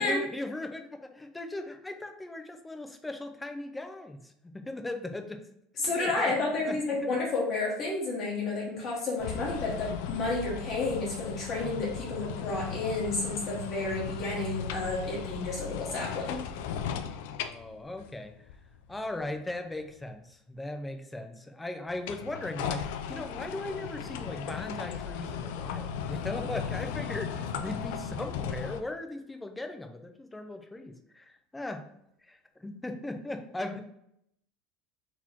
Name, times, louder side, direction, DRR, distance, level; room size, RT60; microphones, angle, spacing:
voice 1, 0.0-5.4 5.8-7.2 17.4-18.3 18.9-31.9 32.2-33.8, left 2 dB, 5° left, 6 dB, 0.4 m, -38 dB
voice 2, 5.8-16.4, left 3 dB, 35° left, -4 dB, 1.1 m, -31 dB
sound 1, 9.2-19.5 21.9-28.8, left 7 dB, 70° left, 0.4 m, -37 dB
4.1 x 2.9 x 4.4 m, 0.75 s
cardioid pair, 165°, 0 cm